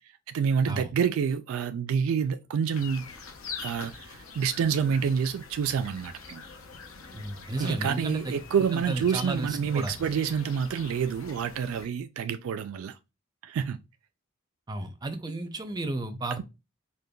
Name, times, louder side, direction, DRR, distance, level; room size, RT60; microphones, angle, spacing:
voice 1, 0.3-3.1 3.6-6.4 7.6-12.9 13.4-13.8, right 7 dB, 85° right, 0.3 m, -28 dB
sound 1, 2.7-11.9, left 5 dB, 80° left, 0.7 m, -44 dB
voice 2, 7.1-8.4 8.7-9.9 14.7-16.4, right 2 dB, 20° right, 0.4 m, -33 dB
5.1 x 2.2 x 2.2 m
head